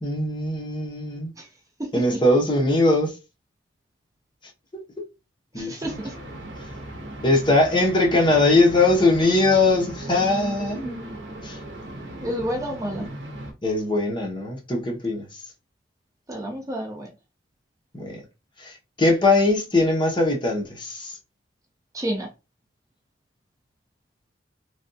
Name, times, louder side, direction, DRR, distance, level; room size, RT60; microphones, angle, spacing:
voice 1, 0.0-1.3 1.9-3.2 4.7-4.8 5.5-5.8 7.2-11.0 11.4-11.6 13.0-13.1 13.6-15.4 17.9-18.2 18.6-21.2, left 2 dB, 25° left, 0.9 m, -21 dB
voice 2, 1.8-2.2 5.6-6.2 12.2-13.1 16.3-17.1 21.9-22.3, right 1 dB, 20° right, 0.6 m, -30 dB
sound 1, 5.8-13.5, right 1 dB, 75° right, 0.9 m, -37 dB
3.3 x 2.3 x 2.6 m
head